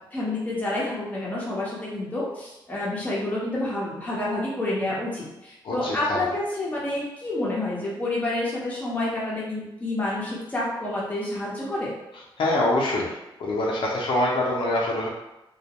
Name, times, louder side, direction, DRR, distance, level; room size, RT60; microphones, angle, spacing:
voice 1, 0.1-11.9, left 2 dB, 15° left, -6 dB, 0.8 m, -29 dB
voice 2, 5.6-6.2 12.4-15.1, left 1 dB, 80° left, -4 dB, 0.6 m, -25 dB
2.3 x 2.1 x 2.9 m, 0.94 s
wide cardioid pair, 125°, 9 cm